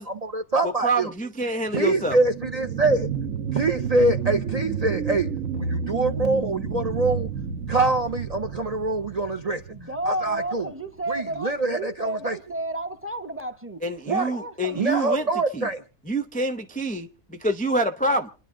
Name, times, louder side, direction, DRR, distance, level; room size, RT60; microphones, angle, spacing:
voice 1, 0.0-1.1 1.7-3.1 3.5-5.3 5.5-7.3 7.7-9.6 10.1-10.7 11.1-12.4 14.1-14.3 14.8-15.8, right 2 dB, 40° right, 0.6 m, -24 dB
voice 2, 0.6-2.2 13.8-15.2 15.5-15.7 16.1-18.3, right 1 dB, 10° left, 0.4 m, -26 dB
sound 1, 1.6-10.7 11.2-11.3, right 7 dB, 65° right, 1.6 m, -31 dB
voice 3, 9.7-15.3, right 1 dB, 10° right, 0.9 m, -32 dB
28.5 x 10.5 x 3.7 m
omnidirectional pair, 1.5 m